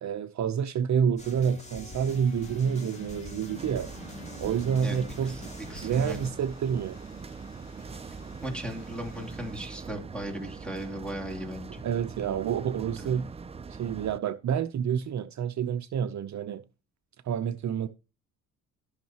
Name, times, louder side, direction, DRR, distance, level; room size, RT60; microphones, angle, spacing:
voice 1, 0.0-3.9 4.4-5.3 5.8-7.0 11.8-13.3 13.7-16.6 17.2-17.9, right 7 dB, 55° right, 0.7 m, -28 dB
sound 1, 1.2-6.3, left 2 dB, 20° left, 2.5 m, -43 dB
sound 2, 1.8-9.8, left 6 dB, 50° left, 1.7 m, -55 dB
sound 3, 3.5-14.2, right 5 dB, 20° right, 0.4 m, -42 dB
voice 2, 4.8-6.2 8.4-11.8 13.0-13.1, equal, 5° left, 3.0 m, -37 dB
14.0 x 6.5 x 2.9 m
cardioid pair, 105°, 35 cm